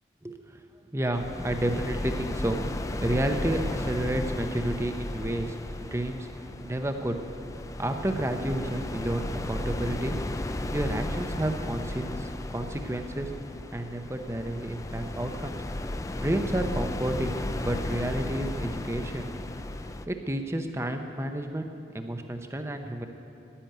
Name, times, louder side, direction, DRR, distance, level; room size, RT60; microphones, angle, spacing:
voice 1, 0.2-0.6 0.9-2.6 3.0-6.3 6.6-7.2 7.8-10.2 10.7-13.3 13.7-15.6 16.2-19.3 20.1-21.7 21.9-23.1, right 1 dB, 15° right, 5 dB, 0.7 m, -30 dB
sound 1, 1.1-20.1, left 1 dB, 15° left, 0.4 m, -34 dB
11.0 x 10.0 x 9.1 m, 2.8 s
head